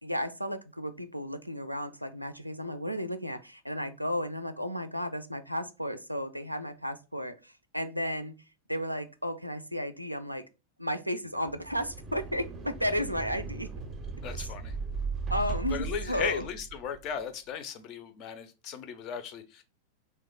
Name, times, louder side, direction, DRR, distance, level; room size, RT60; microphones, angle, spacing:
voice 1, 0.0-8.3 8.7-10.4 10.8-13.7 15.3-16.5, equal, 90° right, 0.3 m, -33 dB
sound 1, 11.4-17.0, right 4 dB, 25° right, 0.5 m, -37 dB
voice 2, 14.2-14.7 15.7-19.6, left 7 dB, 40° left, 0.4 m, -36 dB
3.0 x 2.2 x 3.6 m
figure-of-eight pair, 90°, 0 cm